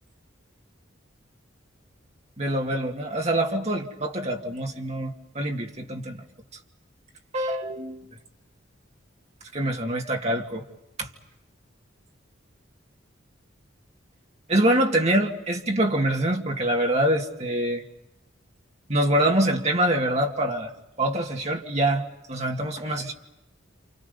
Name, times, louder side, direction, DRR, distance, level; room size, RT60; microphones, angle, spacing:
voice 1, 2.4-6.2 7.3-8.0 9.5-10.6 11.0-11.1 14.5-17.8 18.9-20.7 21.0-23.1, right 1 dB, 35° right, 2 dB, 2.2 m, -25 dB
29.5 x 28.0 x 5.4 m, 0.91 s
head